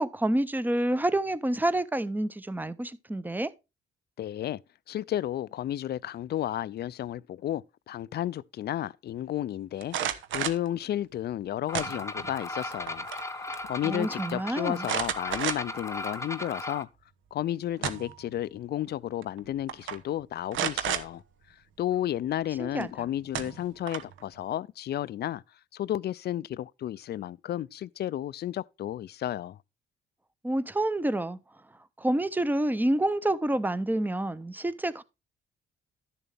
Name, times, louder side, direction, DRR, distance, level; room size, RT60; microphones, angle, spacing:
voice 1, 0.0-3.5 13.8-14.9 22.6-23.1 30.4-31.4 32.0-35.0, right 1 dB, 10° right, 0.7 m, -28 dB
voice 2, 4.2-4.6 4.9-10.0 10.3-13.1 13.7-16.9 17.3-21.2 21.8-25.4 25.7-29.6, left 12 dB, 55° left, 0.4 m, -32 dB
sound 1, 9.8-10.7 11.7-12.3 12.7-13.3 13.5-13.6 14.8-15.9 16.4-16.5 17.5-18.2 19.2-19.4 19.7-20.0 20.5-21.1 22.8-22.9 23.3-24.2, right 9 dB, 80° right, 1.0 m, -31 dB
sound 2, 11.7-16.8, left 2 dB, 15° left, 0.9 m, -37 dB
11.5 x 6.9 x 3.4 m
cardioid pair, 90°, 20 cm